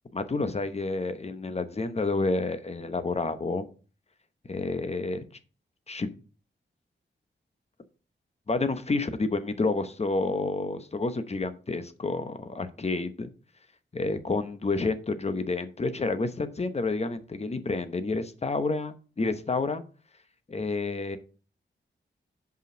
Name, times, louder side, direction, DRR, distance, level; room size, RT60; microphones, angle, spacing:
voice 1, 0.1-3.6 4.5-5.2 5.9-6.1 8.5-13.3 13.9-19.8 20.5-21.2, left 3 dB, 35° left, 10 dB, 0.9 m, -29 dB
5.3 x 5.2 x 6.2 m, 0.37 s
wide cardioid pair, 100°, 20 cm